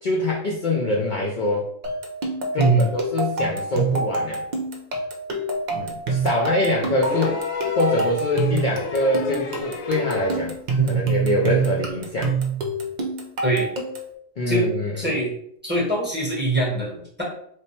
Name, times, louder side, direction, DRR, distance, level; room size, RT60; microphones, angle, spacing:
voice 1, 0.0-1.7 2.5-4.4 5.7-7.4 7.8-10.5 10.9-12.3 14.4-15.1, left 1 dB, 55° left, -2 dB, 0.5 m, -24 dB
sound 1, 1.8-14.1, right 3 dB, 55° right, 0.5 m, -27 dB
voice 2, 2.6-2.9 10.8-11.0 13.4-13.7 14.5-14.7 15.0-15.3 15.6-17.2, right 2 dB, 10° right, -5 dB, 0.9 m, -22 dB
sound 2, 7.0-10.5 11.9-12.0, left 4 dB, 80° left, 1.0 m, -30 dB
3.2 x 2.1 x 4.2 m, 0.68 s
omnidirectional pair, 1.4 m